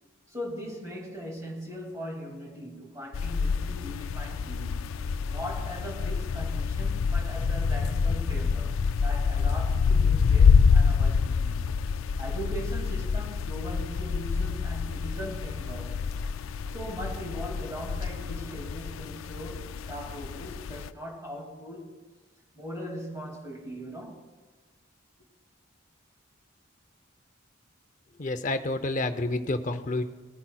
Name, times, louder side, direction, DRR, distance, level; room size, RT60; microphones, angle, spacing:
voice 1, 0.3-4.8 5.3-11.8 12.2-16.0 16.7-22.0 22.5-24.3, equal, 15° right, 2.3 m, -40 dB
sound 1, 3.1-20.9, left 5 dB, 80° left, 0.4 m, -27 dB
voice 2, 28.2-30.0, left 2 dB, 40° left, 0.6 m, -29 dB
19.0 x 10.0 x 2.3 m
head